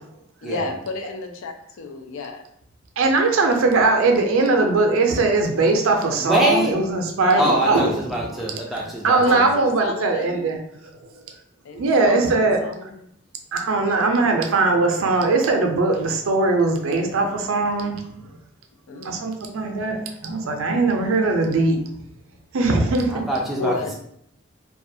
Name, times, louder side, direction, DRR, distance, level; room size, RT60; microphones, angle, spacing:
voice 1, 0.4-1.5 1.8-2.4 7.3-7.5 9.2-10.4 11.6-13.0 18.9-19.1 20.9-21.1 23.6-24.0, left 3 dB, 75° left, 5 dB, 0.4 m, -31 dB
voice 2, 3.0-8.3 8.8-10.6 11.0-11.1 11.7-12.6 13.5-18.0 19.0-21.8 22.5-23.2, right 3 dB, 85° right, 3 dB, 0.5 m, -20 dB
voice 3, 6.2-6.8 7.4-9.5 23.1-23.7, right 1 dB, ahead, -3 dB, 0.4 m, -24 dB
2.3 x 2.2 x 2.6 m, 0.71 s
head